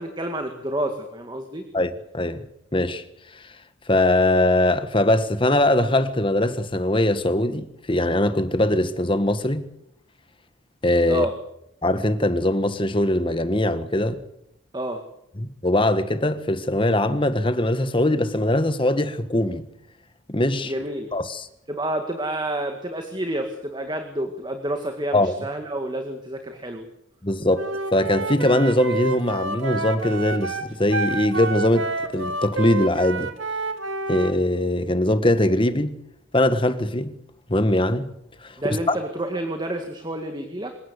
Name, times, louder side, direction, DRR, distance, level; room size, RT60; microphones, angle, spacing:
voice 1, 0.0-1.6 11.1-11.3 14.7-15.1 20.6-21.1 21.7-26.9 38.6-40.7, right 1 dB, 20° right, 2.1 m, -29 dB
voice 2, 1.7-3.0 3.9-9.7 10.8-11.2 11.8-14.2 15.4-19.7 20.3-20.7 21.1-21.5 25.1-25.3 27.2-27.6 27.9-33.3 34.1-36.0 36.3-37.2 37.5-38.1 38.4-38.5, left 1 dB, 25° left, 1.6 m, -21 dB
Wind instrument woodwind instrument, 27.5-34.3, right 2 dB, 75° right, 2.4 m, -29 dB
27.0 x 17.0 x 8.3 m
head